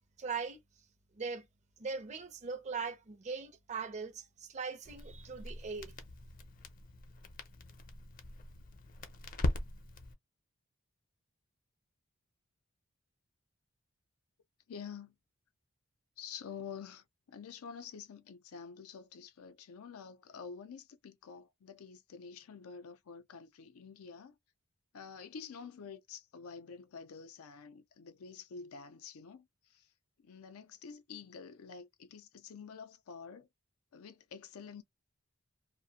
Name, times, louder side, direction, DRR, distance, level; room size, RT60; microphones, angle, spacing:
voice 1, 0.2-0.6 1.1-1.5 1.8-5.9, right 5 dB, 35° right, 0.5 m, -40 dB
Crackle, 4.8-10.1, left 1 dB, 40° left, 0.6 m, -40 dB
voice 2, 14.7-15.2 16.2-24.3 24.9-29.9 30.2-33.5 33.9-34.8, left 6 dB, 90° left, 0.5 m, -48 dB
2.4 x 2.1 x 2.7 m
head